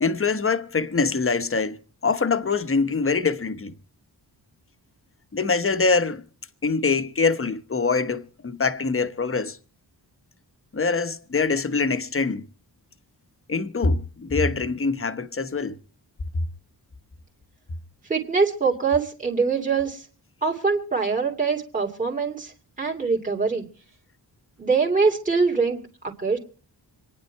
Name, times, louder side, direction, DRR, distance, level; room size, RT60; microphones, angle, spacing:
voice 1, 0.0-3.7 5.3-6.2 6.6-9.6 10.7-12.5 13.5-15.8, left 4 dB, 30° left, 1.1 m, -24 dB
voice 2, 18.1-20.1 20.4-23.7 24.6-26.4, right 4 dB, 20° right, 2.5 m, -23 dB
26.5 x 10.5 x 4.5 m
wide cardioid pair, 125°, 42 cm